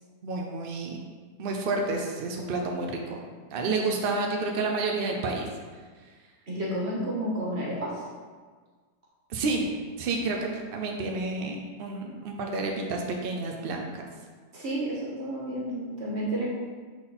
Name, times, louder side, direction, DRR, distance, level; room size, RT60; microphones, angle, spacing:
voice 1, 0.2-1.0 1.4-3.0 3.5-5.4 9.3-9.7 10.0-14.0, right 3 dB, 75° right, 1 dB, 0.5 m, -30 dB
voice 2, 6.5-8.0 14.5-16.5, right 1 dB, 40° right, -6 dB, 1.8 m, -31 dB
6.1 x 3.9 x 4.2 m, 1.5 s
omnidirectional pair, 1.8 m